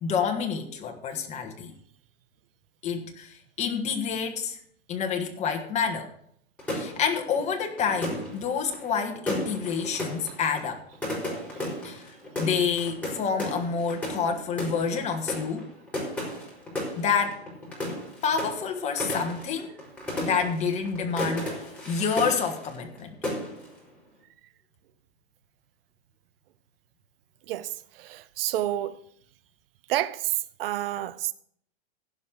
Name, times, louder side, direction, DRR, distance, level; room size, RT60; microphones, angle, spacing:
voice 1, 0.0-1.7 2.8-4.6 4.9-6.1 6.7-10.8 11.8-12.1 12.4-15.7 17.0-17.4 18.2-19.7 20.2-21.6 21.9-23.1, left 6 dB, 20° left, 1.5 m, -28 dB
sound 1, 6.6-23.0 23.2-23.8, left 1 dB, 5° left, 4.7 m, -34 dB
voice 2, 27.5-29.0 29.9-30.3 30.6-31.3, right 13 dB, 65° right, 0.8 m, -29 dB
16.0 x 5.4 x 6.4 m
supercardioid pair, 150°, 31 cm